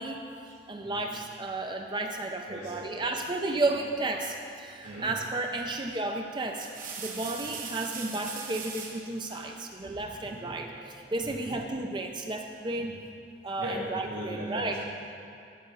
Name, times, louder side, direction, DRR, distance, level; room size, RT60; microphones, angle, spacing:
voice 1, 0.7-6.7 7.0-13.0 13.4-14.7, right 2 dB, 25° right, 3 dB, 0.5 m, -33 dB
voice 2, 2.4-3.1 4.8-5.1 7.2-7.5 9.3-10.6 11.2-11.6 12.7-12.9 13.6-14.8, equal, 85° right, -11 dB, 2.5 m, -40 dB
sound 1, 5.4-5.7 6.4-9.1 10.5-11.2, right 5 dB, 50° right, 1.1 m, -41 dB
15.0 x 5.0 x 5.6 m, 2.6 s
head